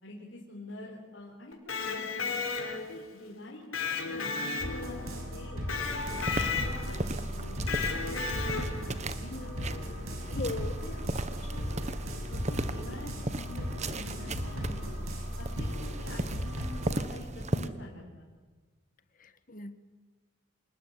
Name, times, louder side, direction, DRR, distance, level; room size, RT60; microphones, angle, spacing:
voice 1, 0.0-2.4 2.9-5.7 6.1-9.6 10.3-11.8 12.3-14.9 15.4-18.3, left 1 dB, 60° left, -2 dB, 4.2 m, -46 dB
Electric guitar, 1.5-3.0 3.7-5.1 5.7-7.0 7.7-8.9, left 5 dB, 85° left, 4.9 m, -33 dB
sound 1, 4.6-16.9, equal, 80° right, 6.4 m, -37 dB
sound 2, 5.8-17.7, right 2 dB, 35° right, 1.2 m, -37 dB
voice 2, 9.3-10.1 10.3-10.8 19.2-19.8, left 2 dB, 40° left, 12 dB, 1.5 m, -39 dB
27.5 x 20.0 x 9.9 m, 1.3 s
head